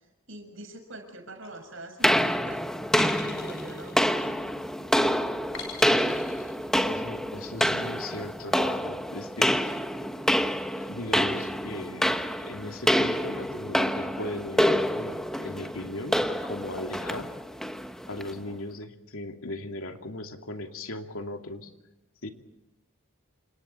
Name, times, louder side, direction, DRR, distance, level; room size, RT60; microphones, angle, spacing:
voice 1, 0.3-2.7 3.0-4.6, right 1 dB, 60° right, 5 dB, 6.7 m, -44 dB
sound 1, 1.4-1.9 2.9-4.6 5.5-6.5, left 5 dB, 55° left, 5.9 m, -42 dB
sound 2, 2.0-18.4, equal, ahead, 1.1 m, -27 dB
voice 2, 6.8-9.9 10.7-17.3 18.1-21.7 22.2-22.3, left 2 dB, 75° left, 5 dB, 2.6 m, -38 dB
29.0 x 27.5 x 4.5 m, 0.95 s
head